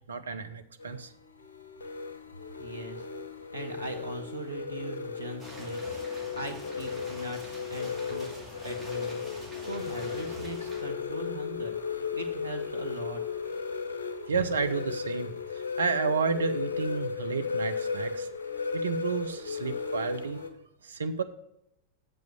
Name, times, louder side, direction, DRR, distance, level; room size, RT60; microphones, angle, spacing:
voice 1, 0.1-1.1 14.3-18.3 18.7-20.5 20.8-21.2, right 5 dB, 70° right, 8 dB, 0.6 m, -31 dB
sound 1, 0.8-20.5, left 5 dB, 65° left, 1.0 m, -35 dB
voice 2, 2.6-3.0 3.5-9.2 9.6-13.2, right 1 dB, 85° right, 3 dB, 1.2 m, -40 dB
sound 2, 5.4-10.8, right 1 dB, 5° right, 2.2 m, -46 dB
7.3 x 5.5 x 6.9 m, 0.82 s
figure-of-eight pair, 90°, 0 cm